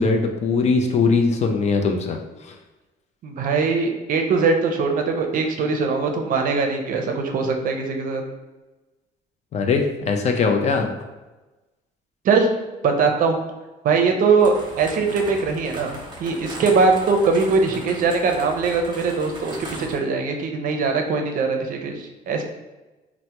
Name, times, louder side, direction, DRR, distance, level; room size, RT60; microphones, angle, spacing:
voice 1, 0.0-2.2 9.5-10.9, left 4 dB, 40° left, 4 dB, 0.4 m, -20 dB
voice 2, 3.2-8.2 12.2-12.5 12.8-13.4 13.8-22.4, right 4 dB, 55° right, 4 dB, 0.5 m, -21 dB
sound 1, 14.4-20.0, right 1 dB, 25° right, 0.7 m, -38 dB
3.2 x 2.0 x 2.8 m, 1.1 s
cardioid pair, 110°, 17 cm